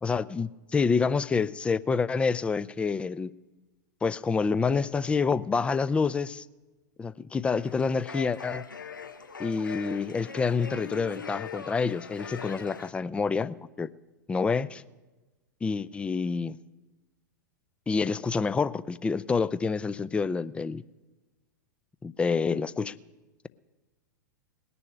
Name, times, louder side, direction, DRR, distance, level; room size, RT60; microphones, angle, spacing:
voice 1, 0.0-3.3 4.0-6.4 7.0-8.6 9.4-13.9 14.3-14.8 15.6-16.6 17.9-20.8 22.0-22.9, left 5 dB, 10° left, 0.4 m, -27 dB
sound 1, 7.6-12.9, left 5 dB, 80° left, 0.9 m, -41 dB
19.5 x 6.9 x 10.0 m
figure-of-eight pair, 100°, 10 cm